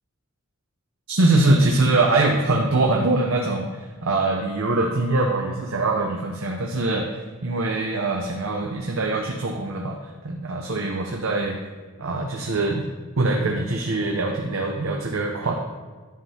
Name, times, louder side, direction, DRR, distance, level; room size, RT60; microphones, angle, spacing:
voice 1, 1.1-7.2 7.4-10.0 10.2-11.6 12.0-12.8 13.2-15.5, right 2 dB, 70° right, 1 dB, 0.7 m, -23 dB
11.0 x 7.4 x 2.8 m, 1.4 s
head